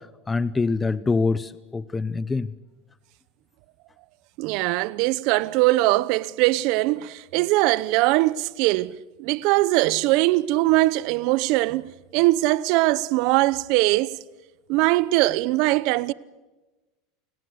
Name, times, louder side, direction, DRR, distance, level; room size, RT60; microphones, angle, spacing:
voice 1, 0.3-2.5, left 4 dB, 15° left, 0.7 m, -25 dB
voice 2, 4.4-8.9 9.2-14.2 14.7-16.1, right 19 dB, 60° right, 0.8 m, -21 dB
29.0 x 19.5 x 8.0 m
supercardioid pair, 130°, 0 cm